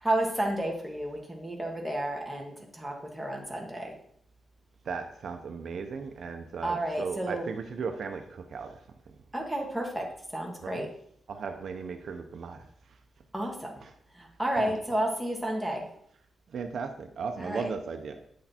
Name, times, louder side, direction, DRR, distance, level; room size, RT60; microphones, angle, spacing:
voice 1, 0.0-3.9 6.6-7.4 9.3-10.1 10.3-10.9 13.3-13.7 14.2-15.9 17.4-17.6, right 1 dB, 5° right, 0 dB, 1.9 m, -31 dB
voice 2, 4.8-8.8 10.6-10.9 11.3-12.7 13.8-13.9 14.6-14.8 16.5-18.2, right 5 dB, 60° right, 6 dB, 0.8 m, -36 dB
9.3 x 6.5 x 4.4 m, 0.67 s
wide cardioid pair, 130°, 0 cm